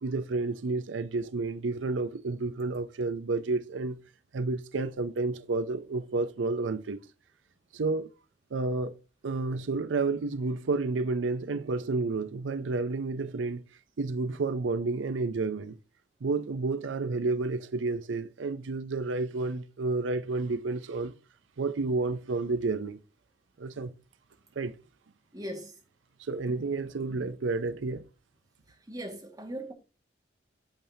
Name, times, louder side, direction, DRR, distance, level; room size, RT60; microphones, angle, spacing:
voice 1, 0.0-4.0 4.3-7.0 7.7-8.1 8.5-8.9 9.2-13.6 14.0-15.8 16.2-21.1 21.6-23.0 23.6-23.9 24.6-24.7 26.2-28.0, right 3 dB, 85° right, 0.5 m, -30 dB
voice 2, 25.3-25.7 28.9-29.7, right 1 dB, 20° right, 1.8 m, -38 dB
8.9 x 7.0 x 2.7 m
head